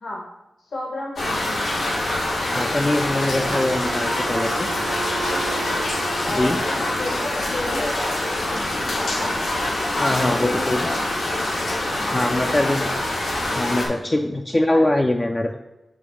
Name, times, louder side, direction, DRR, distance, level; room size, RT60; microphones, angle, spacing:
voice 1, 0.7-1.5 5.3-5.6 6.2-9.3 9.9-11.0 12.0-12.9 14.7-15.0, left 1 dB, 75° left, -3 dB, 1.2 m, -32 dB
sound 1, 1.2-13.9, left 1 dB, 90° left, 1.4 m, -25 dB
voice 2, 2.5-4.7 6.3-6.6 10.0-10.8 12.0-12.9 13.5-15.6, left 1 dB, 20° left, 3 dB, 0.3 m, -22 dB
Wind instrument woodwind instrument, 2.9-7.4, right 6 dB, 70° right, 1.2 m, -36 dB
7.0 x 3.0 x 4.8 m, 0.99 s
wide cardioid pair, 155°, 0 cm